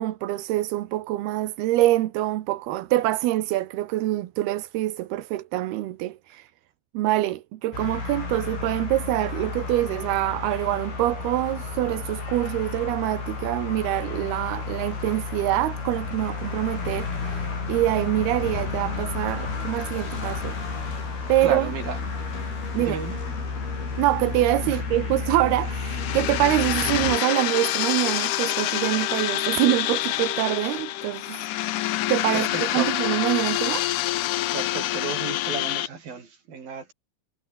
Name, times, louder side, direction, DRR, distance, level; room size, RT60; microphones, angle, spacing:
voice 1, 0.0-6.5 6.9-20.6 21.3-21.7 22.7-23.0 24.0-31.4 32.1-33.9, right 15 dB, 75° right, 3.0 m, -25 dB
sound 1, 7.7-27.2, left 4 dB, 60° left, 9.2 m, -32 dB
voice 2, 21.4-22.0 22.8-23.2 24.7-24.8 32.3-32.9 34.5-36.9, right 5 dB, 60° right, 6.7 m, -33 dB
sound 2, 25.6-35.9, left 15 dB, 85° left, 1.7 m, -27 dB
omnidirectional pair, 4.9 m